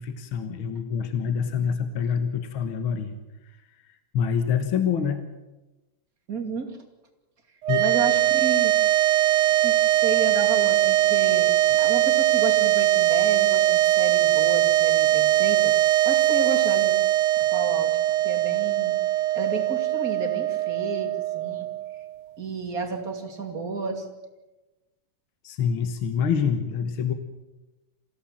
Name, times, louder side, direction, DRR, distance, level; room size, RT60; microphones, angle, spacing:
voice 1, 0.0-3.2 4.1-5.3 7.7-7.9 25.4-27.1, left 7 dB, 70° left, 8 dB, 2.2 m, -26 dB
voice 2, 6.3-6.8 7.8-8.7 9.6-15.7 16.0-17.0 17.5-17.9 18.2-19.0 19.3-21.7 22.4-24.1, right 3 dB, 40° right, 4 dB, 3.0 m, -32 dB
sound 1, 7.6-22.1, right 14 dB, 80° right, 1.8 m, -21 dB
28.0 x 16.0 x 7.6 m, 1.1 s
omnidirectional pair, 2.4 m